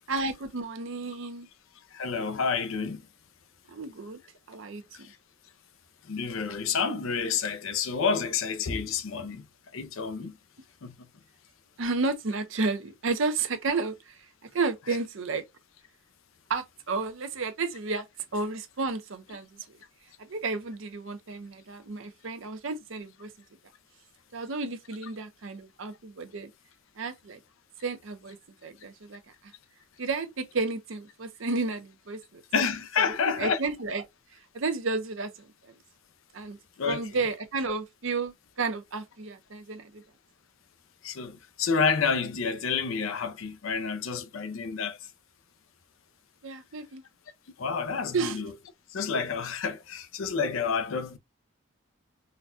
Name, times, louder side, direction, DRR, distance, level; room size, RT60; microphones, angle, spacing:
voice 1, 0.1-1.5 3.7-4.2 4.5-4.8 11.8-14.3 14.5-15.4 16.5-18.1 18.3-19.8 20.2-23.3 24.3-26.5 27.0-27.4 27.8-28.4 28.6-29.5 30.0-32.4 33.0-33.1 33.4-34.0 34.5-35.7 36.3-36.6 36.9-40.0 46.4-47.0 48.1-48.4, right 3 dB, 70° right, 0.6 m, -32 dB
voice 2, 1.9-3.0 4.9-5.2 6.0-9.5 9.7-10.4 10.8-10.9 32.5-33.6 36.8-37.0 41.0-45.1 47.6-48.5 48.9-51.2, left 5 dB, 75° left, 0.5 m, -29 dB
3.9 x 2.2 x 2.5 m
head